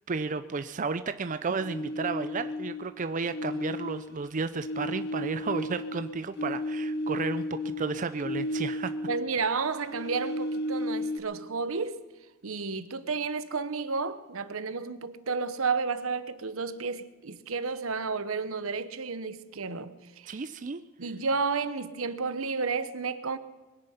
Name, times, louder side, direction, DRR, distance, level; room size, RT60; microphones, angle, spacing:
voice 1, 0.1-8.9 20.3-20.8, right 4 dB, 35° right, 0.5 m, -33 dB
sound 1, 1.6-2.9 3.2-9.3 9.6-11.2, left 1 dB, 50° left, 0.9 m, -34 dB
voice 2, 9.1-12.0 12.4-20.4 21.0-23.4, right 4 dB, 80° right, 0.9 m, -31 dB
22.0 x 10.0 x 5.7 m
head